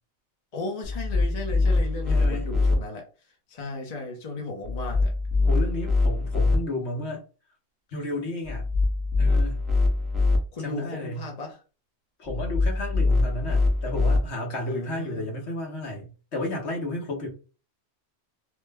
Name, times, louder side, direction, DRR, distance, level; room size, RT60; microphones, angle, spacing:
voice 1, 0.5-3.1 3.5-5.1 10.5-11.6 14.7-15.3, left 2 dB, 40° left, 0.8 m, -35 dB
sound 1, 0.8-2.8 4.6-6.6 8.4-10.4 12.3-14.2, left 3 dB, ahead, 0.5 m, -23 dB
voice 2, 2.0-2.5 5.5-7.2 7.9-8.6 9.2-9.6 10.6-11.2 12.2-17.3, left 1 dB, 65° left, 1.3 m, -32 dB
3.0 x 2.1 x 3.4 m
omnidirectional pair, 1.3 m